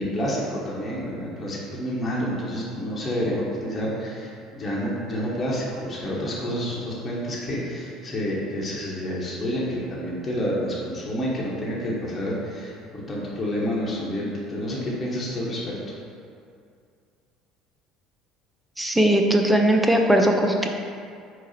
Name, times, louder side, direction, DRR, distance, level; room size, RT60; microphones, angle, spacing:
voice 1, 0.0-15.7, equal, 30° left, -5 dB, 0.9 m, -29 dB
voice 2, 18.8-20.7, right 1 dB, 5° right, 2 dB, 0.4 m, -19 dB
4.7 x 2.0 x 4.1 m, 2.3 s
supercardioid pair, 80°, 0 cm